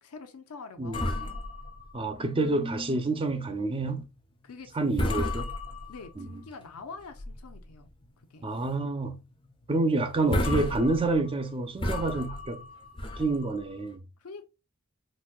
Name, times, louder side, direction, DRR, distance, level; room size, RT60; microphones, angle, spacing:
voice 1, 0.0-1.4 4.4-5.3 5.9-7.9 8.3-8.5 14.2-14.5, left 4 dB, 75° left, 0.7 m, -45 dB
voice 2, 0.8-1.3 1.9-4.0 4.7-5.5 6.2-6.3 8.4-9.2 9.7-12.7 13.0-14.0, right 2 dB, 25° right, 0.5 m, -28 dB
sound 1, 0.9-2.7 3.1-3.2 3.7-4.0 4.5-4.7 4.9-6.3 6.8-7.6 8.0-8.1 8.6-8.8 9.1-9.2 9.8-9.9 10.2-13.9, left 1 dB, 25° left, 0.6 m, -33 dB
4.1 x 2.2 x 2.3 m
head